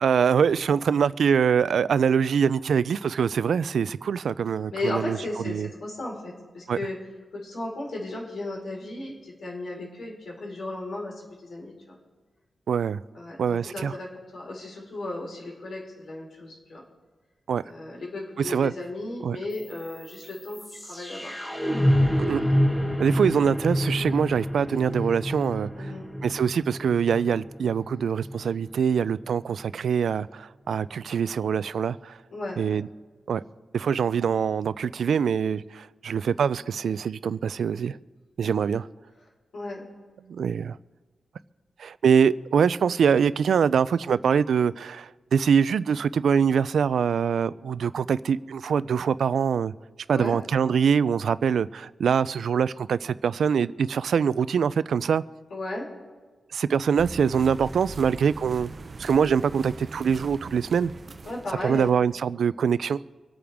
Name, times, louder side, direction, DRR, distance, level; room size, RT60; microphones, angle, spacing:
voice 1, 0.0-5.2 5.4-5.7 6.7-6.8 12.7-13.0 13.4-13.9 17.5-17.6 18.5-18.7 19.2-19.4 22.2-22.4 23.0-25.9 26.2-32.1 32.6-32.9 33.3-33.4 33.7-38.0 38.4-38.9 40.3-40.8 41.8-49.7 50.1-55.2 56.5-58.7 59.0-60.9 61.6-63.0, right 7 dB, 75° right, 17 dB, 0.4 m, -24 dB
voice 2, 4.7-7.0 7.3-12.0 13.1-16.8 17.6-21.3 21.9-22.0 23.0-23.1 25.7-26.0 32.3-32.6 34.1-34.2 39.5-39.8 50.1-50.4 55.5-55.9 61.2-62.0, left 2 dB, 70° left, -3 dB, 4.4 m, -35 dB
sound 1, 19.5-29.5, equal, 15° left, 1.4 m, -28 dB
sound 2, 56.9-62.2, right 3 dB, 35° right, 0.7 m, -41 dB
25.5 x 8.7 x 3.6 m, 1.3 s
wide cardioid pair, 170°, 0 cm